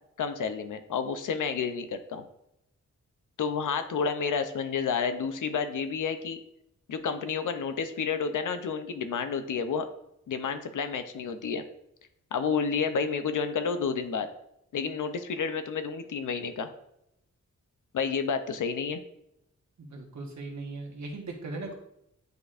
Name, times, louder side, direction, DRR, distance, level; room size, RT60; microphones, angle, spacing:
voice 1, 0.2-2.2 3.4-6.4 6.9-9.9 10.3-11.6 12.3-14.3 14.7-16.7 17.9-19.0, left 6 dB, 75° left, 9 dB, 0.6 m, -30 dB
voice 2, 19.8-21.8, right 2 dB, 60° right, 1 dB, 1.3 m, -38 dB
9.4 x 4.2 x 2.5 m, 0.80 s
wide cardioid pair, 170°, 31 cm